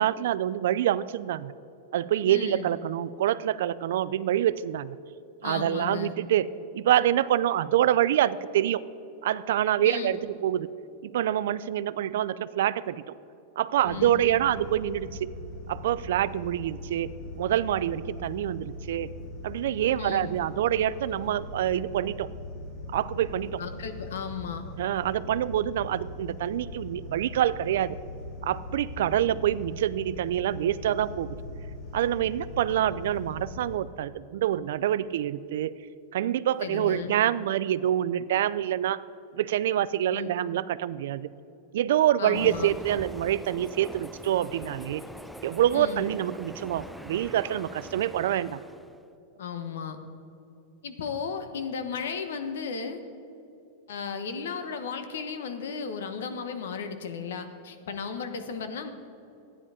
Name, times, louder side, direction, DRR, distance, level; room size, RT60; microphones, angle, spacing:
voice 1, 0.0-1.5 1.9-5.0 5.4-8.8 9.2-10.7 11.0-13.2 13.6-15.4 15.7-19.1 19.4-22.3 22.9-23.6 24.8-28.0 28.4-31.4 31.9-35.7 36.1-39.0 39.3-41.3 41.7-45.0 45.4-48.6, right 11 dB, 75° right, 16 dB, 0.4 m, -26 dB
voice 2, 2.3-2.7 5.4-6.1 9.8-10.2 13.8-14.3 19.9-20.3 23.6-24.6 36.6-37.1 40.1-40.3 42.2-42.7 45.7-46.0 49.4-50.0 50.8-53.0 53.9-58.9, left 6 dB, 90° left, 8 dB, 1.2 m, -35 dB
sound 1, 13.8-33.8, left 2 dB, 40° left, 2.9 m, -41 dB
Train, 42.3-49.0, equal, ahead, 0.4 m, -43 dB
12.5 x 9.8 x 5.0 m, 2.7 s
supercardioid pair, 150°, 0 cm